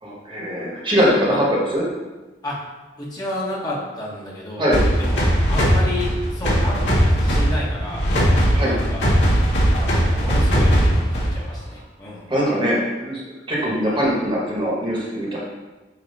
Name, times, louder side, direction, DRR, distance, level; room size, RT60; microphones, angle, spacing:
voice 1, 0.0-1.8 4.6-4.8 8.5-8.7 12.3-13.2 13.5-15.4, equal, 30° right, -4 dB, 1.5 m, -21 dB
voice 2, 3.0-4.7 5.0-8.0 8.6-9.1 9.7-12.3 13.6-14.0, left 1 dB, 20° left, -6 dB, 1.4 m, -31 dB
sound 1, 4.7-11.5, equal, 80° left, 1.8 m, -19 dB
8.6 x 3.0 x 4.1 m, 1.2 s
head